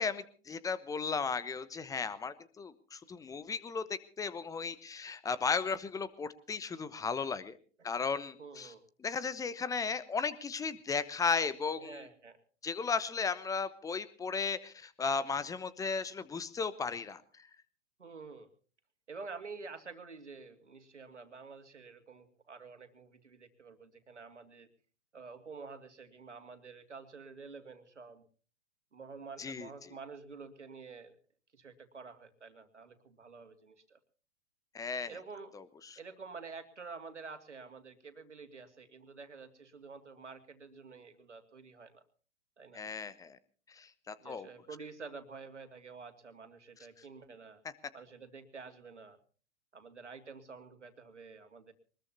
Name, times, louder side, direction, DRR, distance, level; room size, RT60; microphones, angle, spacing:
voice 1, 0.0-7.6 7.8-8.7 9.0-12.1 12.6-17.5 29.4-29.9 34.7-35.1 35.5-36.0 42.7-43.4 43.7-44.5, left 5 dB, 10° left, 16 dB, 1.0 m, -35 dB
voice 2, 8.4-8.8 11.7-12.4 18.0-18.5 19.1-24.7 25.1-28.2 28.9-31.2 31.5-34.0 35.1-35.6 36.0-42.0 42.6-42.8 44.2-47.6 47.9-49.2 49.7-51.7, right 4 dB, 80° right, 8 dB, 2.6 m, -49 dB
23.0 x 21.0 x 2.8 m, 0.40 s
figure-of-eight pair, 110°, 35 cm